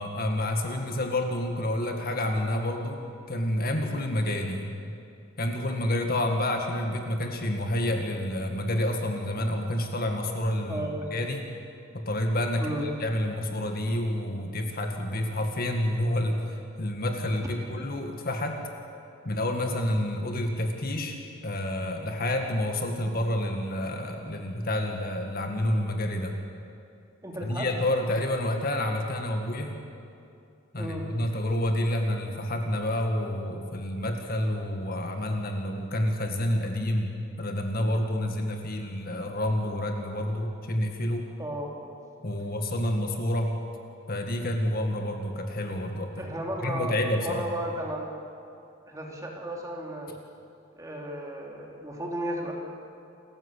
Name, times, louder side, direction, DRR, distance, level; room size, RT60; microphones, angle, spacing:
voice 1, 0.0-4.7 5.4-11.4 11.9-16.4 16.8-18.6 19.2-21.2 21.4-26.3 27.4-29.8 30.7-41.3 42.2-43.5 44.1-46.3 46.6-47.4, left 1 dB, 45° left, 3 dB, 1.9 m, -29 dB
voice 2, 10.7-11.1 12.6-12.9 27.2-27.7 30.8-31.1 41.4-41.7 46.2-46.9 47.2-48.1 48.9-50.1 50.8-52.5, right 1 dB, 15° right, -1 dB, 3.2 m, -34 dB
28.5 x 14.0 x 8.3 m, 2.5 s
head